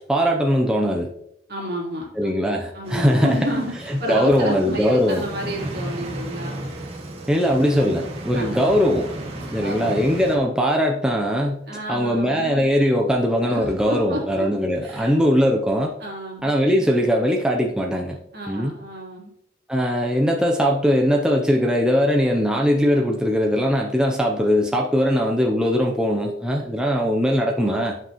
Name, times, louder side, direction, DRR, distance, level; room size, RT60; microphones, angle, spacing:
voice 1, 0.1-1.1 2.2-3.4 3.9-5.2 7.3-9.1 9.5-15.9 16.4-18.2 18.5-18.7 19.7-28.0, equal, 5° right, 0 dB, 0.5 m, -20 dB
voice 2, 1.5-2.3 2.7-6.5 7.8-8.0 8.3-8.8 9.4-10.0 11.7-12.7 13.4-14.5 14.8-15.1 16.0-16.6 18.3-19.3, equal, 55° right, -3 dB, 2.6 m, -31 dB
sound 1, 2.9-10.4, right 1 dB, 35° right, 1.3 m, -34 dB
9.9 x 5.5 x 3.0 m, 0.75 s
head